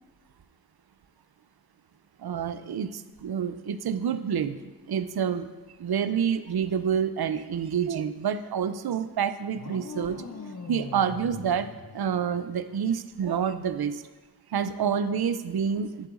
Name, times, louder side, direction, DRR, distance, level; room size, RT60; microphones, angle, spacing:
voice 1, 2.2-4.6 4.9-5.5 5.8-10.2 10.7-14.0 14.5-16.1, right 7 dB, 60° right, 12 dB, 0.5 m, -28 dB
sound 1, 9.5-12.7, left 5 dB, 40° left, 0.6 m, -41 dB
9.7 x 7.8 x 2.5 m, 1.2 s
wide cardioid pair, 50°, 43 cm